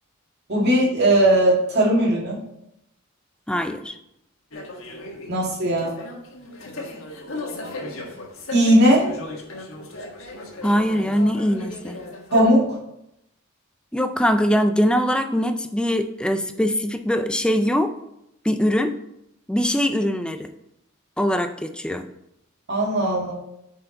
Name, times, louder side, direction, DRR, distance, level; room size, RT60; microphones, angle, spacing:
voice 1, 0.5-2.4 5.3-5.9 8.5-9.1 12.3-12.7 22.7-23.3, right 1 dB, 50° right, -3 dB, 2.1 m, -18 dB
voice 2, 3.5-3.9 10.6-12.0 13.9-17.9 18.4-19.0 19.5-20.5 21.2-22.1, equal, 5° left, 8 dB, 0.4 m, -22 dB
sound 1, 4.5-12.5, left 2 dB, 70° left, 1.5 m, -36 dB
8.7 x 4.6 x 4.0 m, 0.82 s
head